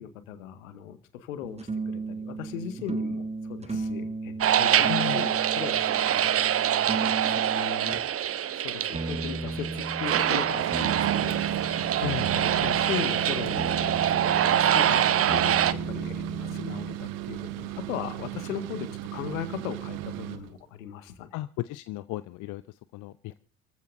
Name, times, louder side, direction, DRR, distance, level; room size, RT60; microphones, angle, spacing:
voice 1, 0.0-6.3 6.9-8.0 8.6-11.4 12.3-13.9 14.2-15.0 15.3-15.6 15.9-21.4, left 9 dB, 70° left, 11 dB, 1.9 m, -38 dB
sound 1, 1.4-8.1 8.9-17.0, right 2 dB, 15° right, 1.4 m, -35 dB
sound 2, 4.4-15.7, right 10 dB, 35° right, 1.0 m, -25 dB
voice 2, 4.9-5.2 12.0-12.3 21.3-22.6 22.9-23.4, left 17 dB, 45° left, 15 dB, 0.7 m, -34 dB
sound 3, 10.5-20.5, right 15 dB, 60° right, 1.3 m, -35 dB
29.0 x 15.0 x 2.7 m, 0.35 s
figure-of-eight pair, 55°, 42 cm